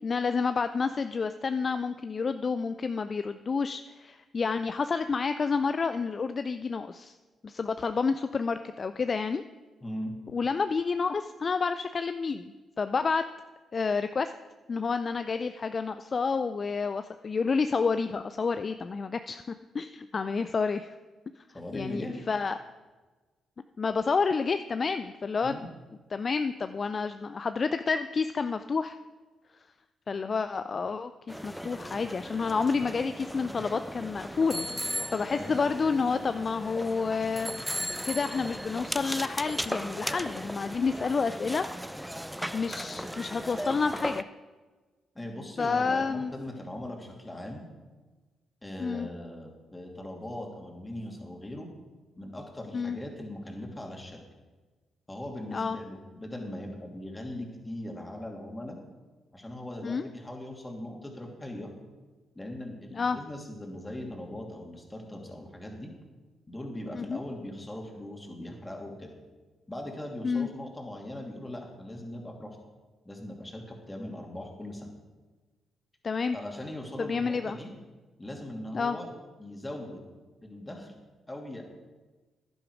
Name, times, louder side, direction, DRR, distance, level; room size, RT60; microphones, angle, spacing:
voice 1, 0.0-7.2 7.4-9.4 10.3-13.2 13.7-14.3 14.7-20.9 21.7-22.6 23.8-25.6 26.1-29.0 30.1-37.6 38.0-41.6 42.5-44.2 45.6-46.3 48.8-49.1 52.7-53.0 55.5-55.8 59.8-60.1 62.9-63.2 66.9-67.2 70.2-70.5 76.0-76.4 77.0-77.6 78.7-79.0, left 5 dB, 45° left, 10 dB, 0.4 m, -29 dB
voice 2, 9.8-10.1 21.5-22.2 25.4-25.7 35.2-35.5 45.1-47.6 48.6-51.7 52.2-54.2 55.1-58.8 59.3-61.7 62.3-65.9 66.5-69.1 69.7-72.6 73.0-74.9 76.3-77.7 78.2-79.1 79.4-80.0 80.4-80.9 81.3-81.6, left 1 dB, 20° left, 1 dB, 2.8 m, -40 dB
sound 1, 31.3-44.2, equal, ahead, 0.6 m, -37 dB
11.0 x 10.5 x 4.9 m, 1.3 s
hypercardioid pair, 40°, 0 cm